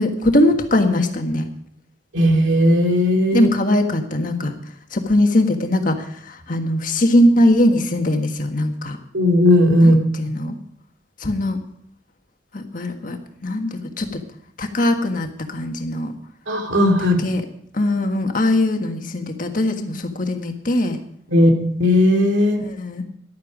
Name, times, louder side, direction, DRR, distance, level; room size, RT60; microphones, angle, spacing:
voice 1, 0.0-1.4 3.3-4.5 4.9-9.0 9.8-9.9 10.2-10.6 11.2-11.6 12.5-14.2 14.6-16.1 17.0-17.4 17.7-21.0 22.6-23.0, left 1 dB, 45° left, 5 dB, 1.6 m, -20 dB
voice 2, 2.1-3.5 9.1-10.3 16.5-17.2 21.3-22.6, left 1 dB, 80° right, 3 dB, 2.5 m, -16 dB
14.0 x 11.5 x 5.0 m, 0.67 s
head